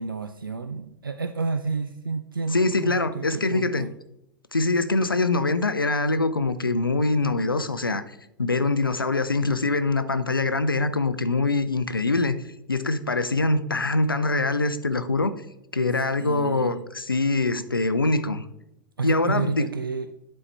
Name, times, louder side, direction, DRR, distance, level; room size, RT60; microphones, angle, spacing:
voice 1, 0.0-3.9 16.2-16.7 19.0-20.1, right 4 dB, 80° right, 0.4 m, -30 dB
voice 2, 2.5-3.9 4.5-12.4 12.7-15.3 15.7-18.5 19.0-19.7, left 3 dB, 85° left, 0.5 m, -24 dB
10.5 x 4.2 x 3.3 m
figure-of-eight pair, 90°, 11 cm